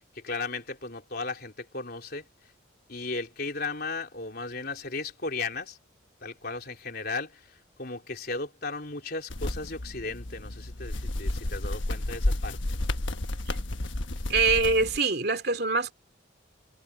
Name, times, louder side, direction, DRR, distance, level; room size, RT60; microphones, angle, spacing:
voice 1, 0.0-2.2 2.9-5.8 6.2-7.4 7.8-12.6, left 3 dB, 55° left, 3.9 m, -35 dB
sound 1, 9.3-15.0, left 1 dB, 75° left, 1.3 m, -31 dB
voice 2, 14.3-15.9, right 4 dB, 55° right, 2.7 m, -24 dB
head